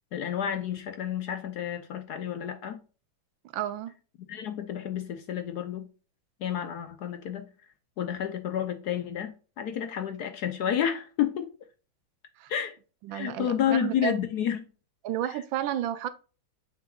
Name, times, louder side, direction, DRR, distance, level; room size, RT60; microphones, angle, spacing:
voice 1, 0.1-2.8 4.3-5.9 6.4-7.5 8.0-11.5 12.5-12.8 13.1-14.7 15.2-15.4, left 9 dB, 65° left, 1.0 m, -30 dB
voice 2, 3.5-3.9 12.4-12.5 13.1-14.2 15.0-16.1, right 11 dB, 75° right, 1.4 m, -31 dB
7.3 x 5.9 x 2.3 m
omnidirectional pair, 2.2 m